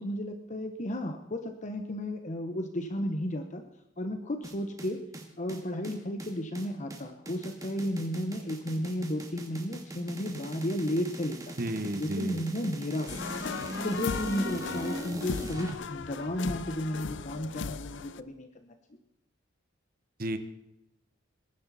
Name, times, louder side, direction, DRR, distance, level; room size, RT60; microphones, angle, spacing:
voice 1, 0.0-3.6 4.0-5.0 5.4-11.5 12.0-13.4 13.8-18.7, left 1 dB, 40° left, 7 dB, 0.9 m, -33 dB
sound 1, 4.4-15.7, right 1 dB, 20° right, 2.0 m, -40 dB
voice 2, 11.6-12.4 20.2-20.4, right 1 dB, 50° right, 9 dB, 1.2 m, -32 dB
sound 2, 13.1-18.2, left 5 dB, 65° left, 0.5 m, -37 dB
20.0 x 11.0 x 4.1 m, 0.88 s
head